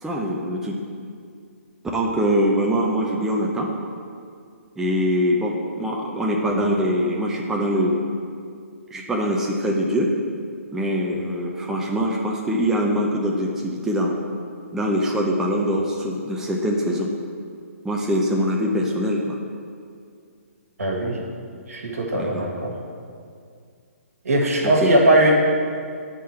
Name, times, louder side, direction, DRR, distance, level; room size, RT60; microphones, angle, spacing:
voice 1, 0.0-0.8 1.9-3.7 4.8-8.0 8.9-10.1 10.7-14.2 14.7-17.1 17.8-19.4 22.1-22.5 24.6-24.9, equal, 5° right, -2 dB, 0.5 m, -23 dB
voice 2, 20.8-21.2 21.7-22.7 24.2-25.3, right 1 dB, 80° right, -2 dB, 1.5 m, -19 dB
9.1 x 3.7 x 4.3 m, 2.3 s
hypercardioid pair, 145°, 8 cm